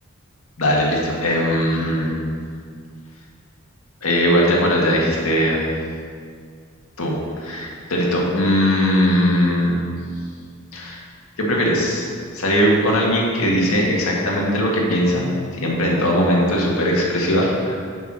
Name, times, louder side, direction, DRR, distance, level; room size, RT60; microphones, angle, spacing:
voice 1, 0.6-2.2 4.0-5.7 7.0-9.9 10.7-11.0 11.4-12.0 12.3-15.3 15.6-17.8, equal, 80° left, -3 dB, 1.8 m, -19 dB
7.1 x 5.7 x 6.1 m, 2.1 s
head